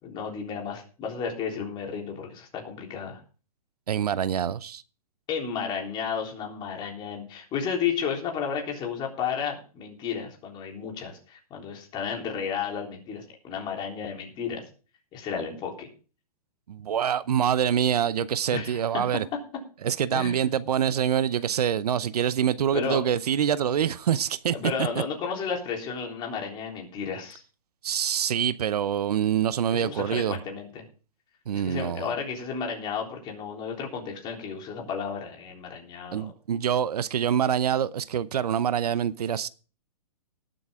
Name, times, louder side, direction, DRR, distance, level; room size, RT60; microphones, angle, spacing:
voice 1, 0.0-3.2 5.3-14.6 15.1-15.9 18.5-18.8 20.1-20.4 22.7-23.0 24.5-27.4 29.7-30.8 31.5-36.3, left 6 dB, 25° left, 3.6 m, -33 dB
voice 2, 3.9-4.8 16.7-19.2 19.8-24.6 27.8-30.4 31.5-32.0 36.1-39.5, right 9 dB, 75° right, 0.7 m, -25 dB
19.0 x 7.9 x 3.6 m
hypercardioid pair, 145°, 20 cm